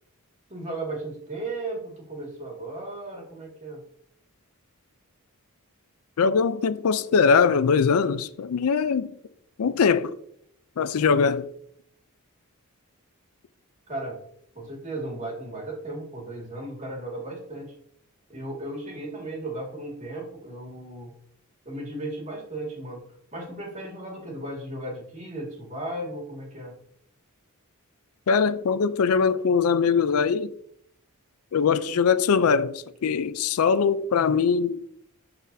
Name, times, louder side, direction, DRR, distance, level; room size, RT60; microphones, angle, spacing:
voice 1, 0.5-3.8 13.9-14.2 14.6-17.7 18.3-21.1 21.7-23.0 23.3-26.7, right 2 dB, 30° right, 2.0 m, -35 dB
voice 2, 6.2-9.2 9.6-10.2 10.8-11.5 28.3-30.5 31.5-34.9, left 6 dB, 75° left, 0.4 m, -22 dB
12.0 x 4.1 x 2.7 m
head